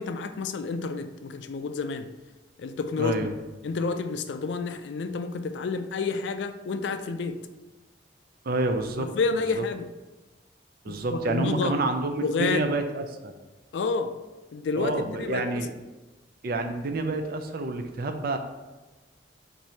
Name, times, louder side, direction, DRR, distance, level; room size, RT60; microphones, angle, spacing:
voice 1, 0.0-2.1 2.6-3.3 3.6-7.4 9.0-9.9 10.9-11.7 12.2-12.7 13.7-14.2 14.5-15.6, left 4 dB, 70° left, 0.3 m, -29 dB
voice 2, 3.0-3.3 8.4-9.1 9.6-9.7 10.8-13.4 14.8-15.7 16.4-18.4, right 2 dB, 55° right, 0.5 m, -28 dB
4.6 x 2.6 x 4.2 m
head